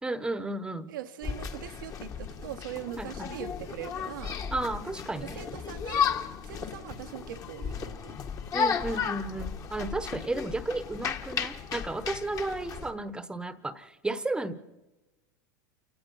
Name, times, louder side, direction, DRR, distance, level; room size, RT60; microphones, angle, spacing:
voice 1, 0.0-0.9 3.0-3.3 4.5-5.4 8.5-14.8, right 2 dB, 10° right, 14 dB, 1.2 m, -33 dB
voice 2, 0.9-4.4 5.3-6.1 6.4-8.5, right 11 dB, 80° right, 6 dB, 1.2 m, -41 dB
sound 1, 1.2-12.9, left 7 dB, 30° left, 1.7 m, -34 dB
29.0 x 17.0 x 5.6 m, 1.1 s
hypercardioid pair, 115°, 11 cm